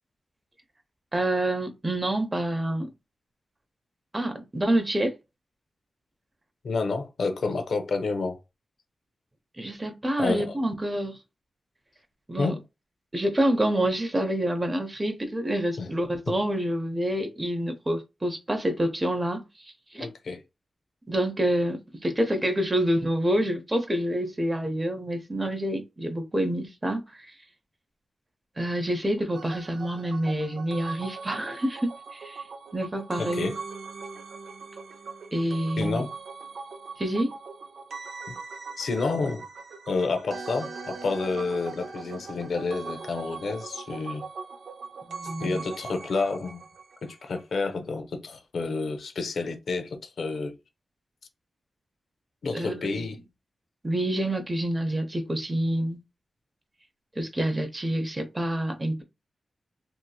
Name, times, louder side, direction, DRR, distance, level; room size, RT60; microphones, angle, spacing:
voice 1, 1.1-2.9 4.1-5.1 9.6-11.2 12.3-12.5 13.1-20.1 21.1-27.3 28.6-32.4 32.7-33.5 35.3-36.0 37.0-37.3 45.1-45.6 52.5-53.1 53.8-56.0 57.2-59.0, right 1 dB, 25° right, 0.7 m, -27 dB
voice 2, 6.6-8.4 10.2-10.6 12.4-12.6 15.8-15.9 20.0-20.4 33.2-33.6 35.8-36.1 38.3-38.4 38.8-39.4 39.9-44.3 45.4-46.6 47.0-50.6 52.4-53.2, left 3 dB, 80° left, 0.6 m, -29 dB
sound 1, 29.3-47.4 47.7-47.8, right 4 dB, 85° right, 0.5 m, -40 dB
2.8 x 2.7 x 2.3 m
cardioid pair, 75°, 0 cm